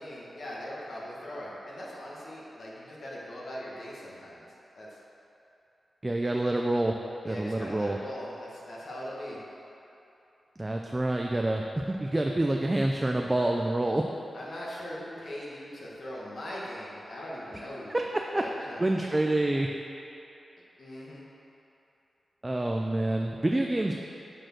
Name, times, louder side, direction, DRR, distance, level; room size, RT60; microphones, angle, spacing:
voice 1, 0.0-4.5 4.7-4.9 7.2-9.4 14.3-18.0 18.3-18.8 20.8-21.2, equal, 60° left, -5 dB, 1.5 m, -40 dB
voice 2, 6.0-6.9 7.2-8.0 10.6-14.0 17.9-18.0 18.3-18.4 18.8-19.7 22.4-23.9, right 1 dB, 15° right, 1 dB, 0.4 m, -27 dB
8.9 x 4.5 x 6.0 m, 2.9 s
wide cardioid pair, 140°, 0 cm